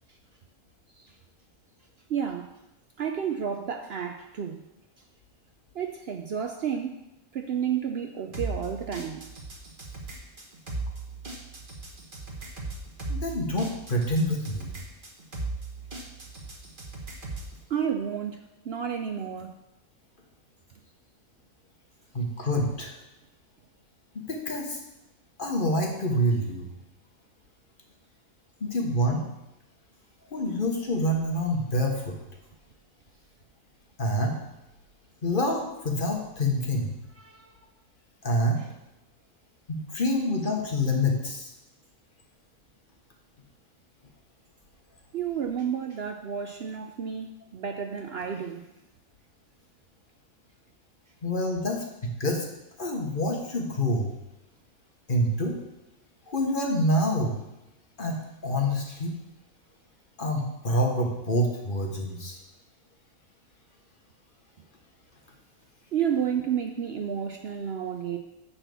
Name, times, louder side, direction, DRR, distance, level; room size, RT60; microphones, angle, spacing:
voice 1, 2.1-2.5 3.0-4.6 5.7-7.0 7.3-9.2 17.7-19.5 37.2-37.5 45.1-48.7 65.9-68.2, right 8 dB, 60° right, 5 dB, 0.7 m, -31 dB
sound 1, 8.3-17.6, right 3 dB, 40° right, 1.5 m, -37 dB
voice 2, 13.1-14.7 22.1-22.9 24.1-24.8 25.4-26.7 28.6-29.2 30.3-32.2 34.0-34.4 35.2-36.9 38.2-38.6 39.7-41.5 51.2-52.5 52.8-54.1 55.1-55.5 56.3-57.4 58.0-59.2 60.2-62.4, equal, 40° left, 1 dB, 1.4 m, -27 dB
9.9 x 4.3 x 6.9 m, 0.94 s
omnidirectional pair, 1.4 m